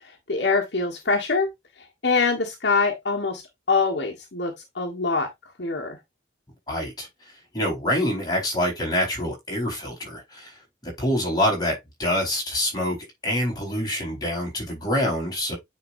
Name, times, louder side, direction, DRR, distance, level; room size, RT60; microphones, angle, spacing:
voice 1, 0.3-1.5 2.0-3.4 3.7-5.3 5.6-6.0, left 4 dB, 70° left, 1.5 m, -24 dB
voice 2, 6.7-7.1 7.5-10.5 10.8-15.5, left 1 dB, 25° left, 4.3 m, -26 dB
9.5 x 4.5 x 2.6 m
head